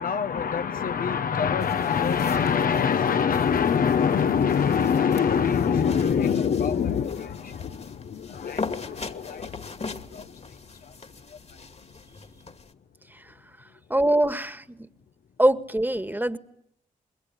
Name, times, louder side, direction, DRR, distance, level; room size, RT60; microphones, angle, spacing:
voice 1, 0.0-12.6 13.7-13.8, left 7 dB, 75° left, 1.2 m, -25 dB
sound 1, 1.6-12.7, left 4 dB, 45° left, 2.3 m, -41 dB
voice 2, 13.9-14.8 15.4-16.4, right 1 dB, 15° right, 1.8 m, -23 dB
26.5 x 21.5 x 9.8 m
cardioid pair, 45°, 15 cm